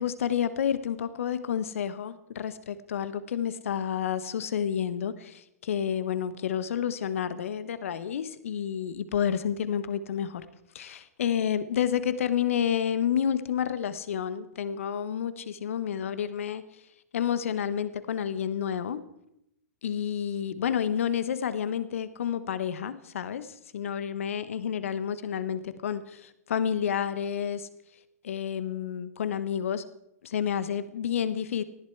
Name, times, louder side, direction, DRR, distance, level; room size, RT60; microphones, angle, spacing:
voice 1, 0.0-10.4 10.7-16.6 17.1-19.0 19.8-27.7 28.2-29.9 30.2-31.6, left 8 dB, 65° left, 13 dB, 1.2 m, -30 dB
19.0 x 14.0 x 4.7 m, 0.82 s
figure-of-eight pair, 110°, 8 cm